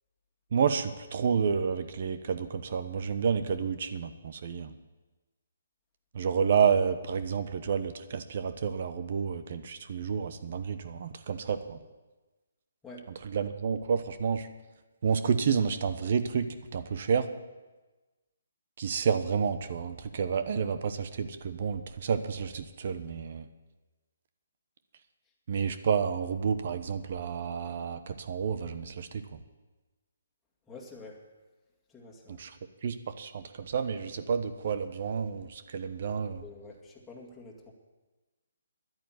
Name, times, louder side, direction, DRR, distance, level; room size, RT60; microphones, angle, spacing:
voice 1, 0.5-4.7 6.1-11.8 13.2-14.5 15.0-17.3 18.8-23.5 25.5-29.4 32.3-32.6 32.8-36.4, right 6 dB, 50° right, 11 dB, 1.0 m, -30 dB
voice 2, 30.7-31.2 31.9-32.4 36.4-37.7, left 3 dB, 5° left, -4 dB, 2.2 m, -48 dB
11.0 x 9.2 x 9.4 m, 1.2 s
hypercardioid pair, 155°, 0 cm